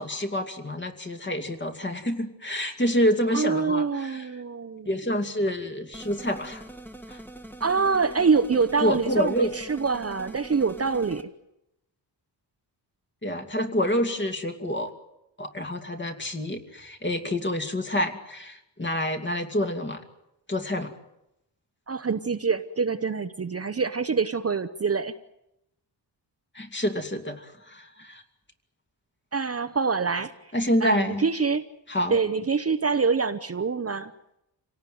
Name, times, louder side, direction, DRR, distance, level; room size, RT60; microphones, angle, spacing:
voice 1, 0.0-4.3 4.8-6.6 7.1-7.2 8.8-9.5 13.2-14.9 15.4-20.0 20.5-20.9 26.5-28.2 30.5-31.2 31.9-32.2, equal, 25° left, 5 dB, 2.6 m, -27 dB
voice 2, 3.3-4.9 7.6-11.3 21.9-25.1 29.3-30.3 30.8-31.6 32.1-34.1, right 5 dB, 35° right, 11 dB, 0.9 m, -25 dB
sound 1, 5.9-11.2, right 1 dB, 5° left, 1.8 m, -43 dB
27.5 x 18.0 x 9.4 m, 0.87 s
wide cardioid pair, 130°, 43 cm